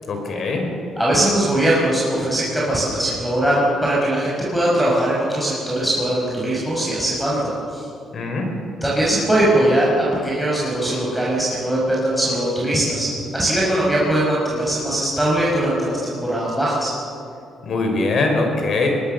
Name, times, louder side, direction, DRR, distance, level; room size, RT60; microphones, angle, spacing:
voice 1, 0.1-0.7 8.1-8.5 17.6-18.9, left 3 dB, 55° left, 3 dB, 5.3 m, -22 dB
voice 2, 1.0-7.9 8.8-13.1 13.3-16.9, right 1 dB, ahead, -7 dB, 6.0 m, -20 dB
23.5 x 19.5 x 6.9 m, 2.6 s
cardioid pair, 90°, 0 cm